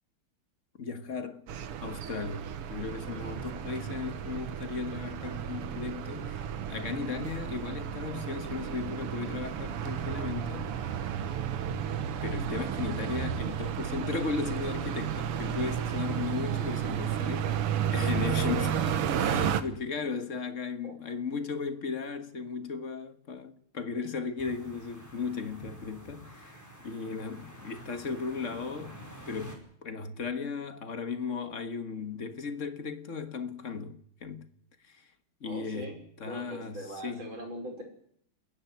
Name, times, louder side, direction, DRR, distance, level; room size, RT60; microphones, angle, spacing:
voice 1, 0.8-1.5 1.8-10.7 12.2-17.6 17.9-29.0 29.3-34.5 34.8-35.0 35.4-35.9 36.2-37.3, left 5 dB, 40° left, 1.6 m, -36 dB
sound 1, 1.5-19.6, right 9 dB, 85° right, 2.1 m, -32 dB
sound 2, 24.4-29.6, equal, 5° left, 4.7 m, -48 dB
voice 2, 35.4-37.8, right 1 dB, 60° right, 6.2 m, -41 dB
28.5 x 10.5 x 10.0 m
omnidirectional pair, 2.4 m